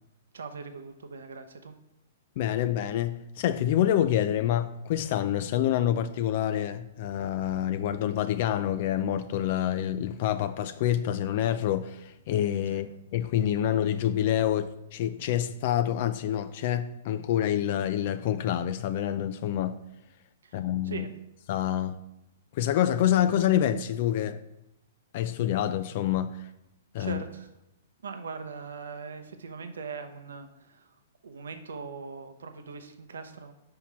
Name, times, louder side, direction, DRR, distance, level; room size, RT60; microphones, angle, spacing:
voice 1, 0.3-1.7 12.7-12.8 20.4-21.1 27.0-27.5 28.0-31.0 31.2-33.5, right 5 dB, 90° right, 0.7 m, -40 dB
voice 2, 2.4-19.8 20.5-21.1 21.5-22.0 22.5-24.4 25.1-26.5 26.9-27.2, left 11 dB, 50° left, 0.4 m, -27 dB
5.8 x 4.4 x 6.1 m
hypercardioid pair, 145°, 0 cm